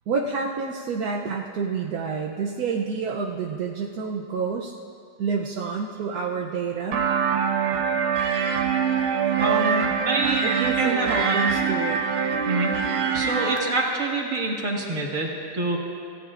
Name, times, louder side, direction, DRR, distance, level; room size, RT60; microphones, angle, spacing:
voice 1, 0.1-4.7 5.2-7.0 10.4-12.0, right 5 dB, 60° right, -1 dB, 1.0 m, -28 dB
sound 1, 6.9-13.6, right 6 dB, 85° right, 1.9 m, -24 dB
voice 2, 9.4-10.4 10.8-11.4 12.4-12.7 13.1-15.8, right 2 dB, 40° right, -2 dB, 2.0 m, -26 dB
26.5 x 16.0 x 2.5 m, 2.5 s
omnidirectional pair, 2.2 m